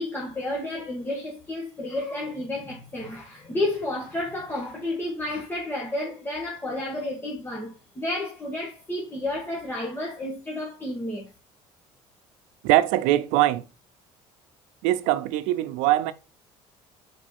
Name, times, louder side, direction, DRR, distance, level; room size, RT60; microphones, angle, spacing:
voice 1, 0.0-11.3, left 1 dB, 15° left, 1.8 m, -31 dB
voice 2, 12.6-13.7 14.8-16.1, right 15 dB, 85° right, 0.6 m, -22 dB
5.0 x 4.6 x 5.5 m
supercardioid pair, 100°, 13 cm